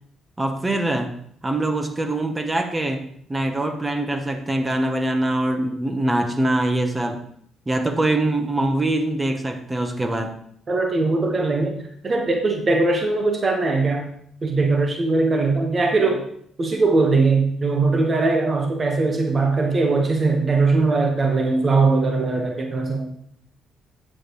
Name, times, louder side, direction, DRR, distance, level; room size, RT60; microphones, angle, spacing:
voice 1, 0.4-1.1 1.4-3.0 3.3-7.2 7.7-10.4, right 1 dB, 20° right, 1.1 m, -23 dB
voice 2, 10.7-14.1 14.4-16.2 16.6-23.1, right 3 dB, 35° right, 1.4 m, -20 dB
8.8 x 7.7 x 3.2 m
cardioid pair, 85°, 0 cm